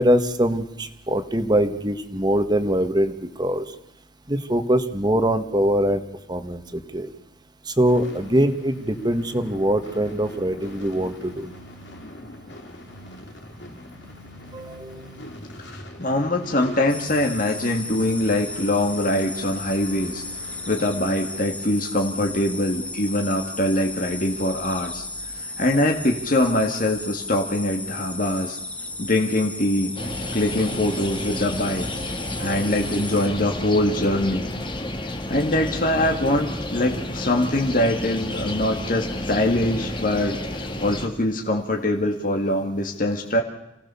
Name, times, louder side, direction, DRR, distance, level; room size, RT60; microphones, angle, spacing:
voice 1, 0.0-3.1 3.4-3.6 4.3-6.0 6.3-7.1 7.7-11.5 14.5-14.9 32.4-32.7, equal, 20° right, 8 dB, 1.7 m, -23 dB
sound 1, 7.9-21.4, left 1 dB, 65° left, 4.0 m, -42 dB
voice 2, 15.7-25.1 25.4-28.6 29.0-29.9 30.3-31.9 32.4-34.5 35.0-43.4, left 1 dB, 45° left, 2 dB, 2.1 m, -23 dB
sound 2, 16.9-33.3, left 2 dB, 5° left, 1.5 m, -35 dB
sound 3, 29.9-41.1, left 1 dB, 25° left, 2.0 m, -31 dB
28.5 x 18.0 x 7.1 m, 0.90 s
head